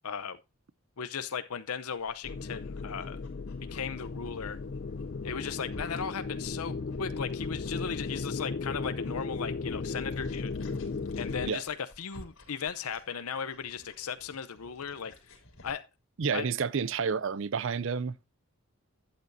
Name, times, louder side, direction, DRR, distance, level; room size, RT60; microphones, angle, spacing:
voice 1, 0.0-0.4 1.0-3.2 3.7-4.6 5.2-10.5 11.2-15.1 15.6-15.9 16.3-16.5, left 6 dB, 85° left, 0.7 m, -37 dB
Dog, 1.9-15.7, left 1 dB, 70° left, 3.5 m, -53 dB
sound 1, 2.2-11.5, left 4 dB, 50° left, 0.4 m, -36 dB
voice 2, 16.2-18.1, right 5 dB, 60° right, 0.5 m, -30 dB
12.0 x 8.7 x 2.7 m
head